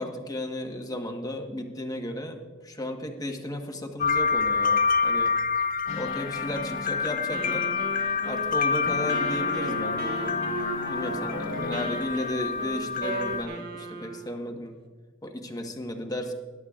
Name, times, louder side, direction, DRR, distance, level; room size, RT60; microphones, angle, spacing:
voice 1, 0.0-5.3 5.9-7.7 8.2-10.4 10.9-14.8 15.2-16.3, left 1 dB, 20° left, 3 dB, 1.3 m, -34 dB
sound 1, 4.0-13.4, left 5 dB, 45° left, 0.5 m, -27 dB
sound 2, 5.9-8.6 8.9-12.5, left 1 dB, 65° left, 1.8 m, -36 dB
Wind instrument woodwind instrument, 7.3-14.4, right 2 dB, 55° right, 1.6 m, -38 dB
21.5 x 11.0 x 2.4 m, 1.4 s
head